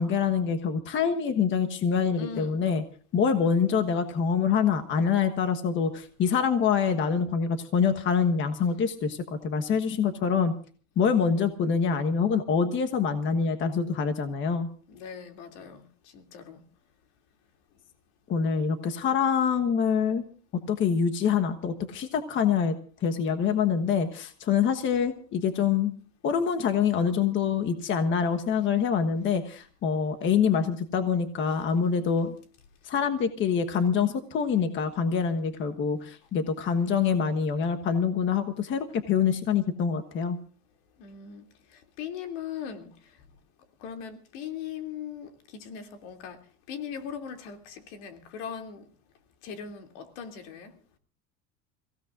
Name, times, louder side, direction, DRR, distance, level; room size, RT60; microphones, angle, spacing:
voice 1, 0.0-2.8 3.1-10.5 11.0-14.7 18.3-20.2 20.5-22.8 23.0-25.9 26.2-32.3 32.8-40.4, left 6 dB, 35° left, 1.3 m, -25 dB
voice 2, 2.2-2.6 14.9-16.6 41.0-41.4 41.7-43.1 43.8-46.4 46.7-48.8 49.4-50.7, left 7 dB, 80° left, 2.9 m, -39 dB
29.0 x 16.5 x 2.5 m
cardioid pair, 150°, 35 cm